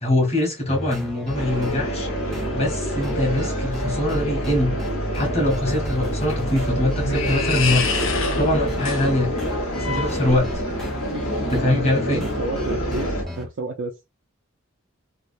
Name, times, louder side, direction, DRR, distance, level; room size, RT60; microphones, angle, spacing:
voice 1, 0.0-2.1 2.5-4.8 5.1-7.9 8.4-9.3 9.9-10.5 11.5-12.2, left 1 dB, 30° left, 1.4 m, -23 dB
sound 1, 0.7-13.5, equal, ahead, 0.7 m, -33 dB
sound 2, 1.3-13.2, equal, 90° left, 1.4 m, -27 dB
sound 3, 6.2-10.8, left 4 dB, 70° left, 0.7 m, -28 dB
voice 2, 12.1-13.9, right 3 dB, 60° right, 0.5 m, -31 dB
3.3 x 2.4 x 2.6 m
head